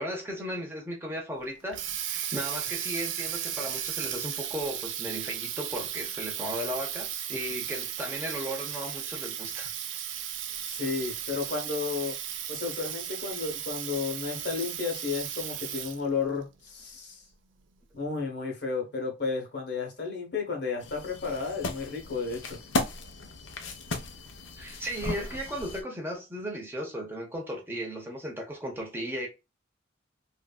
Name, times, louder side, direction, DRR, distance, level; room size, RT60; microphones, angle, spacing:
voice 1, 0.0-9.7 24.6-29.3, equal, 10° right, 0.7 m, -36 dB
Water tap faucet, 1.4-16.1, right 10 dB, 70° right, 0.4 m, -35 dB
voice 2, 10.6-12.1 12.5-17.2 17.9-22.6, left 5 dB, 60° left, 1.1 m, -32 dB
sound 1, 20.8-25.8, left 2 dB, 80° left, 0.7 m, -35 dB
3.2 x 2.6 x 2.2 m
head